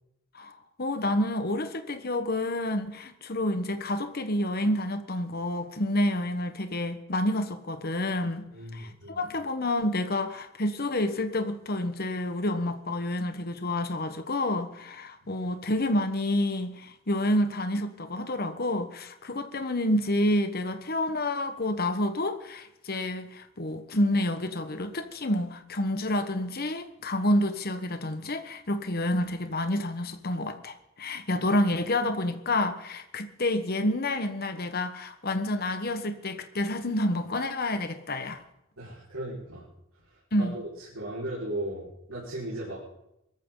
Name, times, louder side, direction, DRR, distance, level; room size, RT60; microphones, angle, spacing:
voice 1, 0.3-8.5 8.7-38.4 40.3-40.6, left 1 dB, 45° left, 1.2 m, -29 dB
voice 2, 8.5-9.2 15.2-15.3 38.8-39.6 40.4-42.8, right 1 dB, 80° right, 5.0 m, -36 dB
23.0 x 14.0 x 3.9 m
head